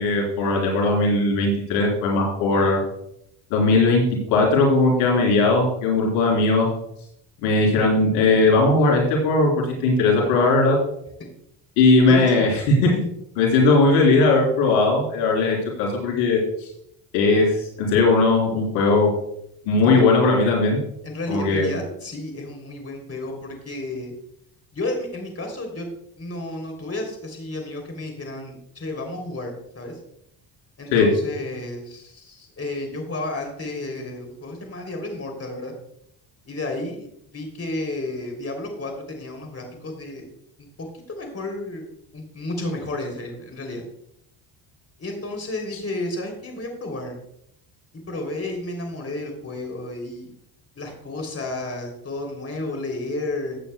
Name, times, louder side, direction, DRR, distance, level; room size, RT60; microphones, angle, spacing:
voice 1, 0.0-2.8 3.5-6.7 7.4-9.5 9.8-10.8 11.8-12.9 13.4-16.4 17.1-17.5 17.8-19.1 19.7-20.8 21.3-21.8 30.9-31.1, left 3 dB, 90° left, -1 dB, 3.7 m, -18 dB
voice 2, 12.1-12.5 19.8-20.0 21.0-24.1 24.7-25.9 26.2-30.0 30.8-35.7 36.4-40.3 40.6-43.8 45.0-47.1 47.9-50.3 50.8-53.6, left 2 dB, 30° left, 2 dB, 3.2 m, -32 dB
15.5 x 8.8 x 2.2 m, 0.74 s
supercardioid pair, 75°, 49 cm